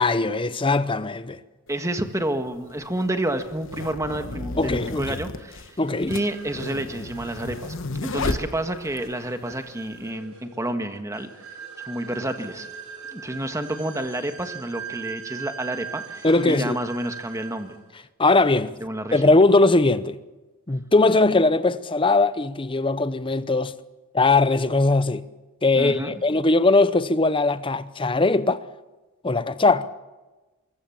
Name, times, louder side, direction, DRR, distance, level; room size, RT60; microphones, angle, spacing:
voice 1, 0.0-1.4 4.6-5.1 5.8-6.1 16.2-16.8 18.2-18.8 19.1-20.2 20.7-23.7 24.1-25.2 25.6-28.6 29.2-29.9, left 3 dB, 25° left, 0.8 m, -20 dB
sound 1, 1.7-1.8 2.7-9.1, left 2 dB, 60° left, 1.3 m, -33 dB
voice 2, 1.7-5.8 6.1-7.7 8.0-11.6 11.8-12.7 13.1-17.8 18.8-19.2 25.7-26.1, right 1 dB, 15° right, 1.6 m, -29 dB
sound 2, 5.8-17.8, right 7 dB, 75° right, 5.8 m, -41 dB
24.5 x 22.0 x 7.2 m
head